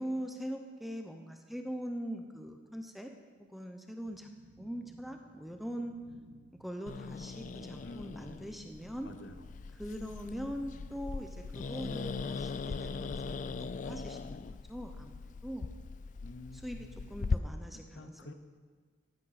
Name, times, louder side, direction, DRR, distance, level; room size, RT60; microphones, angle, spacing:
voice 1, 0.0-3.1 3.5-4.3 4.6-5.9 6.6-9.1 9.8-15.7 16.6-16.8 17.1-18.3, equal, ahead, 4 dB, 0.7 m, -42 dB
sound 1, 4.1-12.6, right 2 dB, 75° right, 0.8 m, -58 dB
Growling, 6.9-17.4, left 4 dB, 40° left, 0.3 m, -40 dB
voice 2, 7.8-8.4 9.0-9.5 16.2-17.1 17.7-18.3, left 2 dB, 70° left, 8 dB, 0.9 m, -50 dB
14.5 x 10.5 x 4.2 m, 1.5 s
head